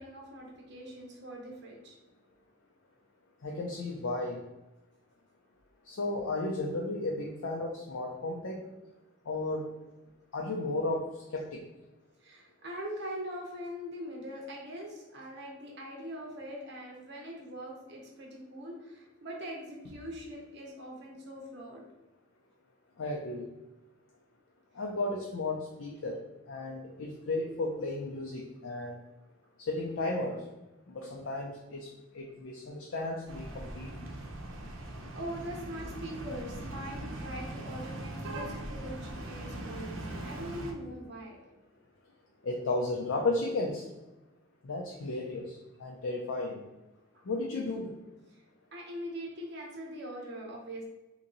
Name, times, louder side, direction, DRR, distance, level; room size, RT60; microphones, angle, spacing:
voice 1, 0.0-2.0 12.2-21.8 35.1-40.0 40.2-41.4 48.7-50.8, equal, 55° right, -1 dB, 0.9 m, -42 dB
voice 2, 3.4-4.4 5.8-8.6 9.3-9.7 10.3-11.6 23.0-23.4 24.8-29.0 29.7-30.4 30.9-31.9 32.1-34.1 42.4-43.9 44.6-46.6 47.3-47.9, left 2 dB, 80° left, -1 dB, 0.5 m, -34 dB
sound 1, 33.3-40.7, right 1 dB, 85° right, 0.6 m, -40 dB
2.9 x 2.7 x 3.8 m, 1.0 s
head